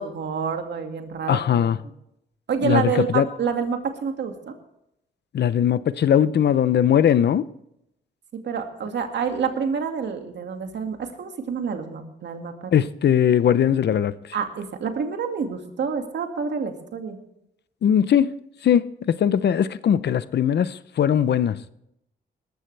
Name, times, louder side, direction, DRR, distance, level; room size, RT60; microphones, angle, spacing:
voice 1, 0.0-1.7 2.5-4.5 8.4-12.7 14.3-17.2, right 6 dB, 65° right, 2.2 m, -28 dB
voice 2, 1.3-1.8 2.6-3.3 5.3-7.4 12.7-14.3 17.8-18.3 18.6-21.6, left 9 dB, 65° left, 0.7 m, -20 dB
19.5 x 14.5 x 3.4 m
cardioid pair, 95°, 19 cm